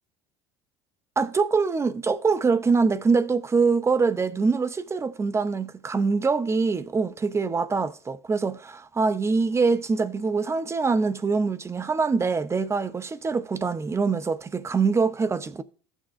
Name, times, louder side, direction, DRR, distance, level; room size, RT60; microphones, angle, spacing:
voice 1, 1.2-15.6, right 4 dB, 20° right, 0.7 m, -24 dB
15.5 x 6.3 x 2.5 m
supercardioid pair, 95°, 13 cm